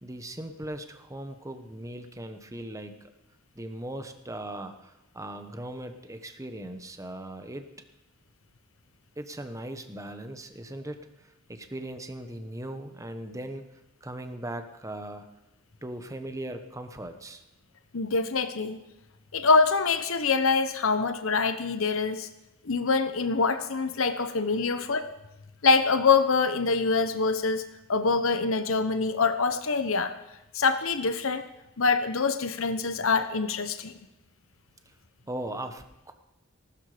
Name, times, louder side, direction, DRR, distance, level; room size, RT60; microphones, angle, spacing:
voice 1, 0.0-3.0 3.5-7.7 9.2-13.6 14.0-15.3 15.8-17.4 35.3-36.1, right 1 dB, 15° right, 7 dB, 1.2 m, -39 dB
voice 2, 17.9-18.8 19.3-22.3 22.6-25.1 25.6-27.6 27.9-30.1 30.5-31.4 31.8-33.9, left 4 dB, 70° left, 9 dB, 1.0 m, -25 dB
19.0 x 13.0 x 5.1 m, 0.96 s
head